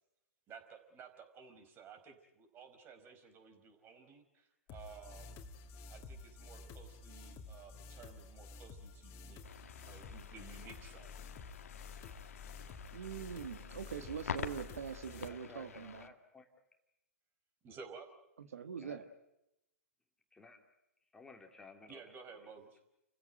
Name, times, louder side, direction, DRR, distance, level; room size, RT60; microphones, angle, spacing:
voice 1, 0.5-5.4 5.9-9.4 9.8-11.2 12.8-13.1 17.6-18.1 21.9-22.8, right 5 dB, 25° right, 8 dB, 4.7 m, -55 dB
sound 1, 4.7-15.3, left 4 dB, 35° left, 2.7 m, -51 dB
sound 2, 9.4-16.1, left 7 dB, 75° left, 1.9 m, -48 dB
voice 2, 12.9-16.1 18.4-19.1, right 7 dB, 75° right, 9 dB, 1.6 m, -43 dB
voice 3, 15.2-16.5 18.8-19.0 20.3-20.6 21.1-22.1, left 4 dB, 10° left, 3 dB, 2.7 m, -56 dB
30.0 x 16.0 x 9.2 m, 0.88 s
hypercardioid pair, 120°, 8 cm